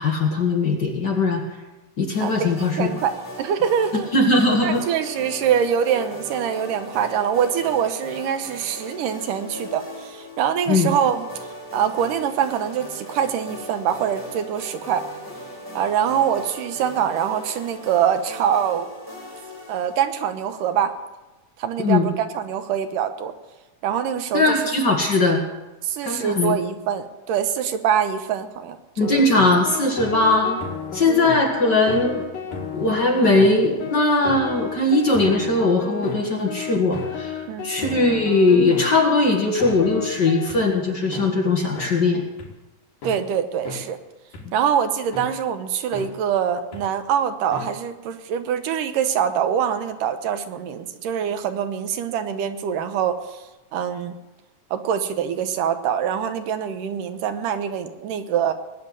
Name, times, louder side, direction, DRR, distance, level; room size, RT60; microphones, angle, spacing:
voice 1, 0.0-1.4 2.0-2.9 4.1-4.8 10.7-10.9 21.8-22.0 24.3-25.4 26.0-26.6 29.0-30.6 30.9-32.3 32.7-42.2 44.4-44.5, left 2 dB, 40° left, 0 dB, 1.8 m, -20 dB
sound 1, 2.1-20.7, equal, 5° right, 5.2 m, -39 dB
voice 2, 2.2-4.1 4.6-11.3 11.7-15.0 15.8-18.9 19.7-20.9 21.6-23.3 23.8-24.6 25.3-25.4 25.8-29.1 37.5-37.7 43.0-44.0 44.5-53.5 53.7-54.2 54.7-58.5, right 8 dB, 80° right, 9 dB, 2.5 m, -24 dB
sound 2, 29.0-40.6 41.1-41.3 41.8-41.9 42.4-42.5 43.0-43.2 43.7-43.8 44.3-44.4 45.1-45.3 45.9-46.1 46.7-46.8 47.5-47.7, left 5 dB, 80° left, 3.9 m, -32 dB
20.0 x 6.8 x 9.5 m, 1.1 s
omnidirectional pair, 3.8 m